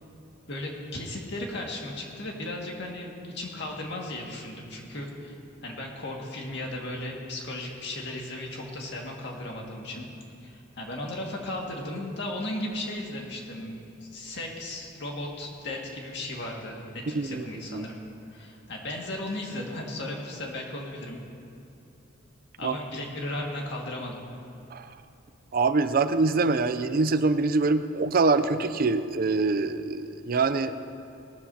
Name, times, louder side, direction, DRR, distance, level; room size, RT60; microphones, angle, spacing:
voice 1, 0.5-5.4 5.6-10.1 10.4-18.0 18.3-21.2 22.6-24.2, left 1 dB, 65° left, -1 dB, 2.0 m, -36 dB
voice 2, 17.1-17.5 17.7-17.8 22.6-22.8 24.7-24.9 25.5-30.7, right 3 dB, 50° right, 11 dB, 0.5 m, -24 dB
18.5 x 13.0 x 2.8 m, 2.8 s
head